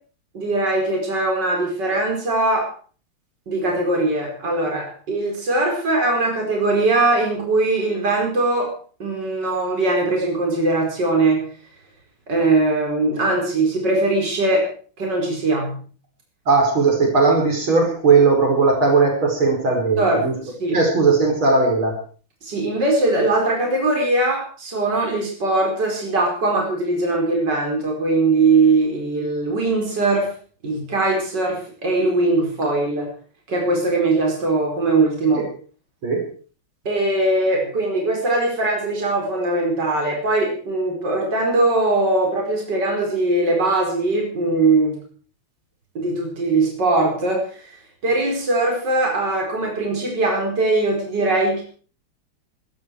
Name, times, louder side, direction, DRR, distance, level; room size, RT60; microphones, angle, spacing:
voice 1, 0.3-2.7 3.5-8.7 9.0-11.4 12.3-14.7 15.0-15.8 20.0-20.2 20.6-20.8 22.4-30.3 30.6-33.1 33.5-35.4 36.9-45.0 46.0-47.8 48.0-51.6, right 2 dB, 50° right, 0 dB, 5.4 m, -21 dB
voice 2, 16.5-20.3 20.7-22.0 35.3-35.4 36.0-36.2, right 4 dB, 70° right, 1 dB, 5.8 m, -17 dB
20.5 x 14.0 x 4.7 m, 0.42 s
omnidirectional pair, 2.4 m